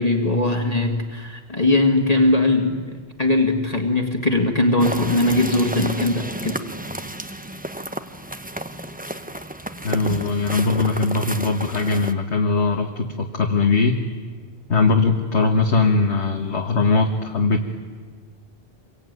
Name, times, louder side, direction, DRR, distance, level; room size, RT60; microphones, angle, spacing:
voice 1, 0.0-6.6, left 2 dB, 35° left, 3 dB, 2.0 m, -20 dB
sound 1, 4.8-12.1, right 1 dB, 10° right, 1.0 m, -31 dB
voice 2, 9.8-14.0 14.7-17.6, left 3 dB, 80° left, 2 dB, 1.9 m, -20 dB
26.0 x 23.5 x 9.5 m, 1.6 s
omnidirectional pair, 1.1 m